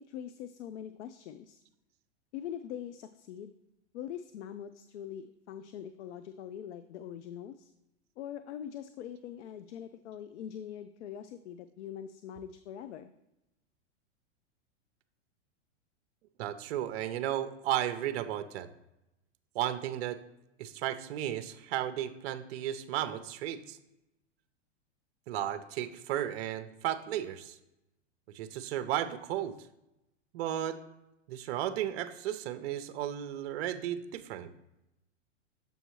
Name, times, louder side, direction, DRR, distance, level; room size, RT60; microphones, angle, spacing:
voice 1, 0.1-1.6 2.3-3.6 3.9-7.7 8.2-13.1, left 9 dB, 75° left, 11 dB, 0.5 m, -43 dB
voice 2, 16.4-18.7 19.5-20.2 20.6-23.8 25.3-27.5 28.3-29.6 30.3-30.8 31.3-34.5, right 11 dB, 60° right, 10 dB, 0.6 m, -34 dB
7.0 x 5.4 x 3.0 m, 0.91 s
hypercardioid pair, 125°, 36 cm